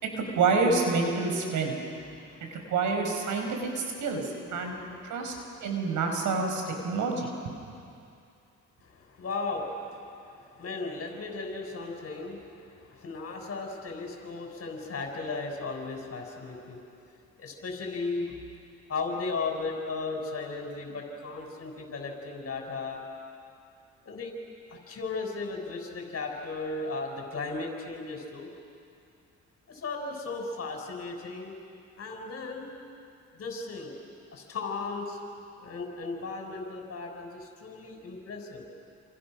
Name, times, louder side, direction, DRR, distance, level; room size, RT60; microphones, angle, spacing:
voice 1, 0.0-1.7 2.5-3.5 3.8-4.2 4.5-4.7 5.1-5.3 5.6-7.3, right 4 dB, 80° right, 3 dB, 5.2 m, -27 dB
voice 2, 1.7-2.7 3.4-3.6 4.6-5.6 8.8-16.8 17.4-18.4 18.9-23.0 24.0-24.3 24.7-28.5 29.7-31.5 32.0-32.7 33.3-33.9 34.3-35.2 35.6-38.7, left 3 dB, 50° left, 1 dB, 6.3 m, -36 dB
29.5 x 27.0 x 6.4 m, 2.5 s
cardioid pair, 90°, 30 cm